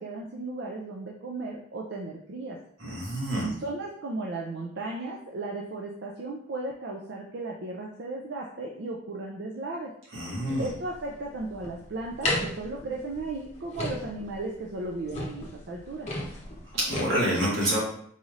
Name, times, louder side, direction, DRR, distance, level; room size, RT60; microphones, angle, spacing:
voice 1, 0.0-2.6 3.4-9.9 10.6-16.1, right 2 dB, 55° right, -2 dB, 0.4 m, -35 dB
voice 2, 2.8-3.5 10.1-10.6 16.7-17.8, equal, 80° right, -5 dB, 1.5 m, -27 dB
sound 1, 10.4-17.0, left 1 dB, 35° left, 0.8 m, -35 dB
4.0 x 3.2 x 2.4 m, 0.63 s
head